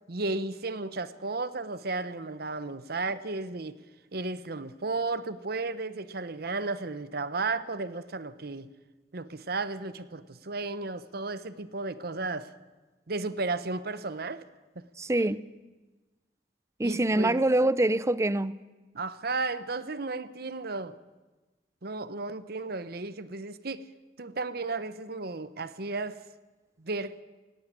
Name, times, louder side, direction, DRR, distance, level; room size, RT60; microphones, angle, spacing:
voice 1, 0.1-3.8 4.1-8.7 9.1-12.5 13.1-14.5 16.8-17.4 18.9-20.9 21.8-23.9 24.2-26.2 26.8-27.1, right 3 dB, 60° right, 1.0 m, -34 dB
voice 2, 15.0-15.4 16.8-18.6, right 1 dB, 15° right, 0.6 m, -25 dB
17.5 x 17.0 x 9.0 m
head